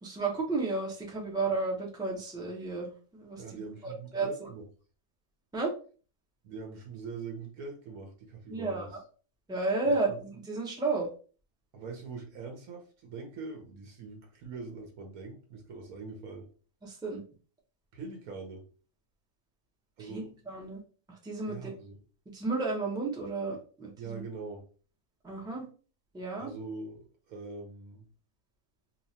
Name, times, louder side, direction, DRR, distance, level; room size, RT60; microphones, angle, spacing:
voice 1, 0.0-3.4 3.8-4.3 5.5-5.7 8.5-8.8 9.5-10.1 10.4-11.1 16.8-17.2 20.1-20.8 21.2-21.7 22.3-24.2 25.2-25.6 26.1-26.5, right 3 dB, 5° right, -2 dB, 0.6 m, -32 dB
voice 2, 3.4-4.6 6.4-8.9 9.8-10.2 11.7-16.5 17.9-18.6 20.0-20.3 21.5-22.0 24.0-24.7 26.4-28.0, right 4 dB, 70° right, 2 dB, 1.2 m, -43 dB
2.9 x 2.4 x 4.1 m, 0.39 s
omnidirectional pair, 1.6 m